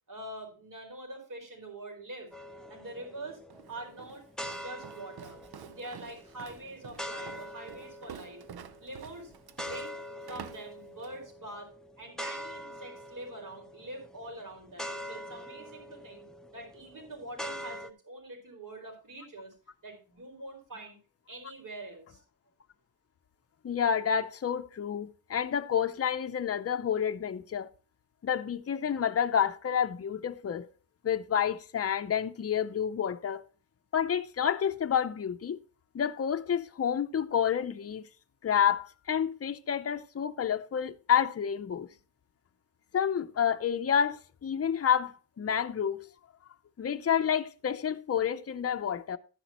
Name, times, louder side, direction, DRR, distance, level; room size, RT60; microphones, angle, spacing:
voice 1, 0.1-2.3 2.7-3.4 3.7-4.2 4.5-5.4 5.7-8.4 8.8-9.3 9.6-9.9 10.2-11.7 12.0-16.2 16.5-19.5 19.8-21.0 21.3-22.2, right 1 dB, 60° right, 4.8 m, -44 dB
sound 1, 2.3-17.9, equal, ahead, 0.7 m, -44 dB
Walk footsteps, 3.5-11.2, right 8 dB, 80° right, 0.8 m, -49 dB
voice 2, 23.6-27.7 28.2-30.7 31.0-33.4 33.9-35.6 35.9-38.1 38.4-41.9 42.9-46.1 46.8-49.2, left 8 dB, 40° left, 0.6 m, -29 dB
12.5 x 10.0 x 3.0 m
wide cardioid pair, 165°, 37 cm